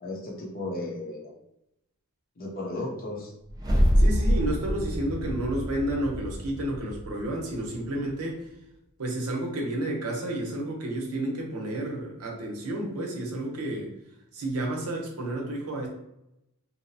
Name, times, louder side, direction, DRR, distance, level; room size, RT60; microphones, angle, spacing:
voice 1, 0.0-1.3 2.4-3.3, left 2 dB, 40° left, -1 dB, 0.6 m, -34 dB
sound 1, 3.5-7.9, equal, 15° right, 0.4 m, -26 dB
voice 2, 4.0-8.5 9.0-13.9 14.3-15.9, right 1 dB, 75° right, 0 dB, 0.7 m, -31 dB
2.8 x 2.0 x 2.6 m, 0.83 s
head